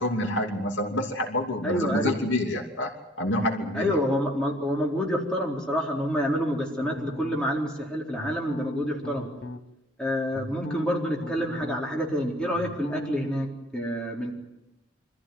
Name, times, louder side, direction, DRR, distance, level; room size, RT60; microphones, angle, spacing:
voice 1, 0.0-2.9 3.2-4.0, left 1 dB, 65° left, 2 dB, 2.9 m, -27 dB
voice 2, 1.6-2.2 3.7-9.3 10.0-13.5 13.7-14.3, equal, 5° left, -3 dB, 4.1 m, -28 dB
sound 1, 6.8-7.7 8.1-9.6 10.1-12.0 12.3-13.3, equal, 50° left, 1.3 m, -37 dB
25.0 x 15.0 x 9.6 m, 0.95 s
head